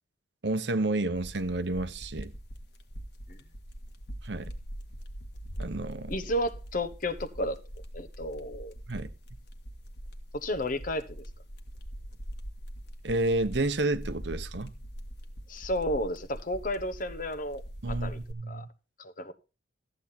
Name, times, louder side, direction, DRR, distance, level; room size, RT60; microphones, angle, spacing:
voice 1, 0.4-2.3 4.2-4.5 5.6-6.1 8.9-9.1 13.0-14.7 17.8-18.7, right 2 dB, 60° right, 0.9 m, -30 dB
sound 1, 1.1-18.3, equal, 60° left, 1.7 m, -42 dB
voice 2, 6.1-7.6 7.9-8.7 10.3-11.2 15.5-17.6 17.9-18.2 18.5-18.6 19.0-19.3, left 1 dB, 45° left, 1.1 m, -32 dB
13.5 x 8.7 x 4.3 m
head